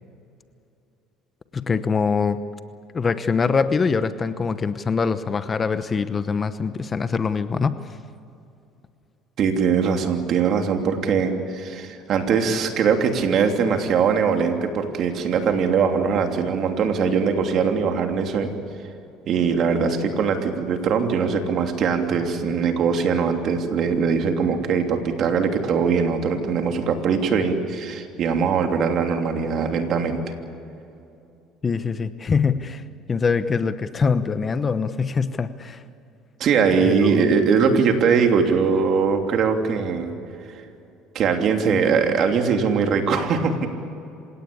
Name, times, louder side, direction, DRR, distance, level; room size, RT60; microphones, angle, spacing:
voice 1, 1.5-2.4 2.9-7.7 31.6-32.8 33.1-35.8 36.8-37.3, left 5 dB, 30° left, 12 dB, 0.9 m, -23 dB
voice 2, 9.4-18.5 19.3-30.3 36.4-40.1 40.5-40.6 41.1-43.7, right 6 dB, 50° right, 4 dB, 3.0 m, -21 dB
27.0 x 17.5 x 8.7 m, 2.7 s
cardioid pair, 110°, 0 cm